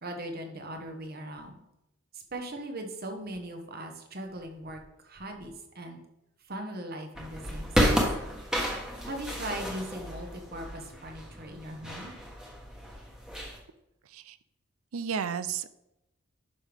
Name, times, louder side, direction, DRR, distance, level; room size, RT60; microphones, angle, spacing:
voice 1, 0.0-1.6 2.1-6.0 6.4-8.0 9.0-12.1, right 1 dB, 45° right, 4 dB, 1.2 m, -39 dB
sound 1, 7.1-13.6, equal, 5° right, 1.2 m, -31 dB
voice 2, 14.9-15.7, right 7 dB, 75° right, 14 dB, 0.5 m, -32 dB
11.0 x 5.6 x 3.5 m, 0.89 s
head